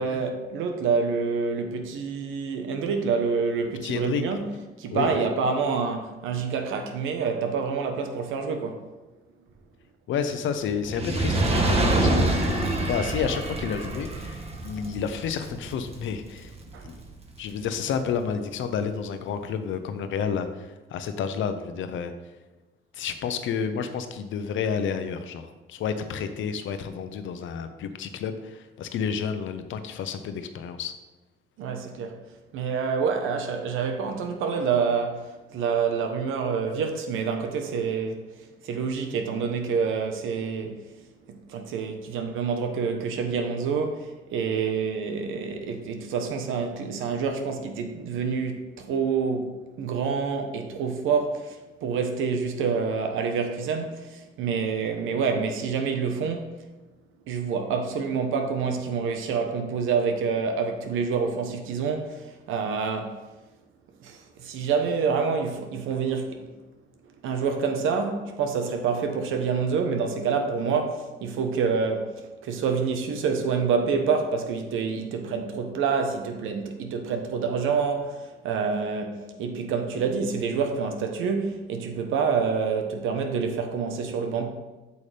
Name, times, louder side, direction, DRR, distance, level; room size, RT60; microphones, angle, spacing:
voice 1, 0.0-4.5 4.8-8.8 16.7-16.9 31.6-32.2 32.5-40.8 41.3-56.5 57.3-63.2 64.0-66.5 67.2-84.5, right 5 dB, 90° right, 1.1 m, -27 dB
voice 2, 3.8-4.2 4.9-5.2 10.1-16.5 16.8-17.0 17.4-22.1 22.9-30.9, left 7 dB, 75° left, 0.8 m, -30 dB
Fire, 10.8-17.2 17.9-18.0, right 1 dB, 30° right, 1.4 m, -26 dB
8.5 x 7.0 x 3.4 m
cardioid pair, 90°, 20 cm